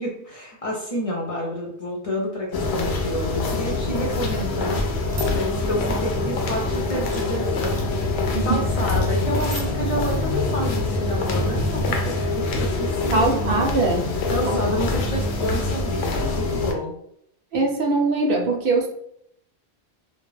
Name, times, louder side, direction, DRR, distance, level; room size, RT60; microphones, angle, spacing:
voice 1, 0.0-4.9 5.3-8.1 8.4-13.7 14.3-16.9, equal, 40° left, -3 dB, 0.6 m, -29 dB
sound 1, 2.5-16.7, left 2 dB, 85° left, 0.8 m, -24 dB
sound 2, 5.1-5.3 7.1-7.4 9.4-9.7, right 2 dB, 85° right, 1.0 m, -36 dB
voice 2, 13.1-14.6 17.5-18.9, right 3 dB, 65° right, 2 dB, 0.7 m, -22 dB
2.3 x 2.2 x 3.2 m, 0.73 s
omnidirectional pair, 1.1 m